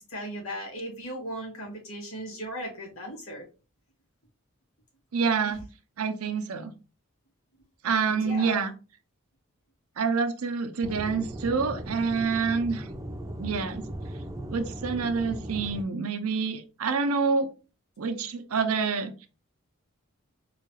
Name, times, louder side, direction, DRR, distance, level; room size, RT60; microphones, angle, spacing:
voice 1, 0.1-3.4 5.4-5.5 8.1-8.7, equal, 70° left, -1 dB, 1.8 m, -37 dB
voice 2, 5.1-5.6 6.0-6.7 7.8-8.7 10.0-12.9 13.4-13.8 14.5-17.5 18.0-19.1, right 5 dB, 90° right, 8 dB, 0.6 m, -27 dB
Aircraft / Engine, 10.8-15.8, right 1 dB, 15° right, 0.4 m, -37 dB
3.8 x 2.3 x 3.0 m, 0.32 s
head